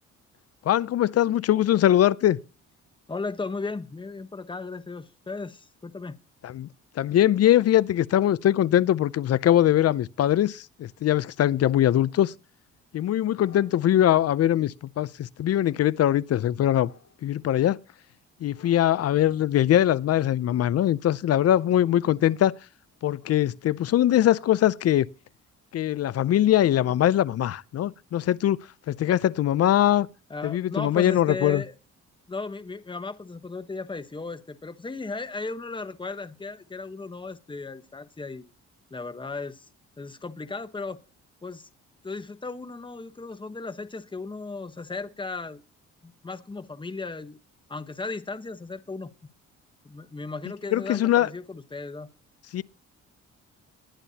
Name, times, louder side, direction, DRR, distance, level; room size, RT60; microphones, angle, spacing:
voice 1, 0.6-2.4 6.4-6.7 7.0-12.3 12.9-16.9 17.2-17.8 18.4-22.5 23.0-25.1 25.7-28.6 28.9-30.1 30.4-31.6 50.7-51.3 52.5-52.6, left 12 dB, 55° left, 0.5 m, -22 dB
voice 2, 3.1-6.2 30.3-31.7 32.3-38.5 38.9-39.7 40.0-41.0 41.4-41.7 42.0-45.6 46.0-47.4 47.7-49.1 49.8-52.1, left 3 dB, 15° left, 1.0 m, -36 dB
sound 1, 11.8-12.4 13.4-13.8 16.8-17.5 18.4-19.6 20.7-21.1 21.5-22.6 22.9-23.4, left 8 dB, 70° left, 2.6 m, -55 dB
20.5 x 8.9 x 2.8 m
cardioid pair, 90°, 30 cm